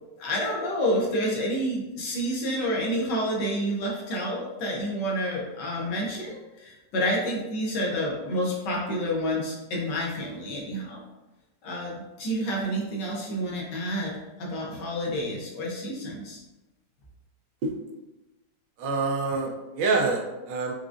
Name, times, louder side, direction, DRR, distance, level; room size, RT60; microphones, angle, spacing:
voice 1, 0.2-11.0 11.6-16.4, equal, 70° left, -3 dB, 1.5 m, -29 dB
voice 2, 18.8-20.7, right 3 dB, 75° right, 1 dB, 1.3 m, -26 dB
4.7 x 2.3 x 2.5 m, 1.0 s
omnidirectional pair, 2.0 m